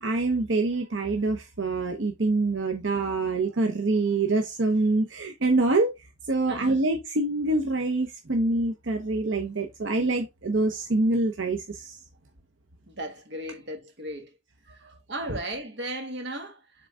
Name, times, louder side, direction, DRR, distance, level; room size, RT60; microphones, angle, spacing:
voice 1, 0.0-5.9 6.3-12.0 15.3-15.4, right 2 dB, 90° right, 0.9 m, -25 dB
voice 2, 6.5-6.8 12.9-14.3 15.1-16.6, right 1 dB, 65° right, 1.6 m, -35 dB
7.1 x 3.8 x 3.6 m
head